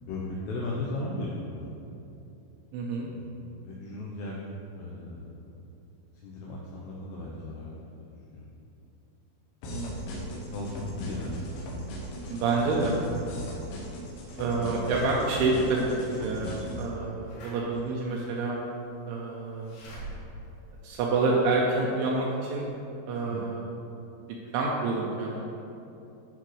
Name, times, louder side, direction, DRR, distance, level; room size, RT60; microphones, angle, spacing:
voice 1, 0.0-1.7 3.1-4.4 4.8-5.3 6.2-8.4 10.1-10.3 10.5-11.4 23.3-23.4, left 2 dB, 90° left, -4 dB, 2.4 m, -36 dB
voice 2, 2.7-3.1 9.7-10.1 12.3-13.0 14.4-18.6 19.1-19.7 20.8-22.7 23.1-23.6 24.2-25.5, right 3 dB, 85° right, -3 dB, 3.0 m, -28 dB
sound 1, 9.6-16.9, equal, 75° left, 2.8 m, -38 dB
Slam / Alarm, 14.9-21.7 22.1-22.2 22.5-22.6, right 1 dB, 60° left, 2.7 m, -47 dB
13.5 x 4.6 x 3.1 m, 2.8 s
omnidirectional pair, 5.9 m